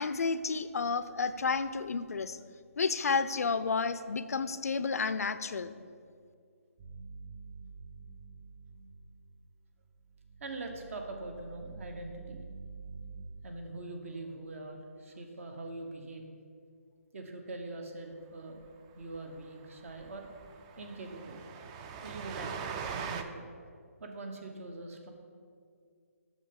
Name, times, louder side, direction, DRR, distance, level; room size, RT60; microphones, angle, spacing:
voice 1, 0.0-2.4 2.8-5.7, left 4 dB, 75° left, 13 dB, 0.4 m, -31 dB
sound 1, 6.8-9.4 9.8-13.2, right 4 dB, 45° right, 1.8 m, -48 dB
voice 2, 10.4-12.4 13.4-16.2 17.1-18.6 19.0-20.3 20.8-21.4 22.0-22.5 23.0-23.5 24.0-25.1, right 2 dB, 60° right, 4 dB, 1.1 m, -43 dB
Train, 18.7-18.8 19.0-19.2 19.4-19.5 19.9-23.2, right 6 dB, 25° right, 0.3 m, -41 dB
8.7 x 6.4 x 3.8 m, 2.2 s
figure-of-eight pair, 145°, 8 cm